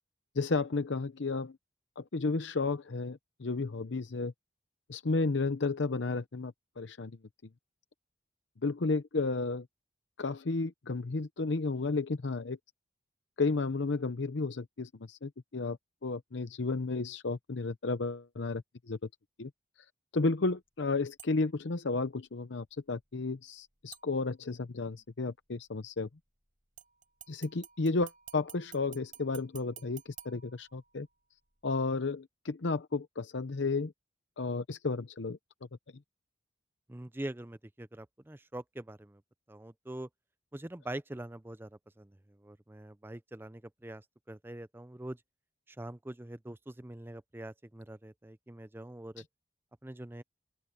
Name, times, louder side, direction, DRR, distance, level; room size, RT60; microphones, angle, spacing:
voice 1, 0.4-1.6 2.0-4.3 4.9-7.1 8.6-9.7 10.2-12.6 13.4-15.8 16.0-19.0 19.4-19.5 20.1-26.1 27.3-31.1 31.6-33.9 34.4-35.4, left 3 dB, 65° left, 0.7 m, -32 dB
sound 1, 21.2-21.6 23.9-24.6 26.8-31.2 31.6-31.7, right 10 dB, 45° right, 6.6 m, -53 dB
voice 2, 36.9-39.2 39.5-40.1 40.5-45.2 45.7-49.2 49.8-50.2, right 1 dB, 10° right, 0.5 m, -44 dB
open air
head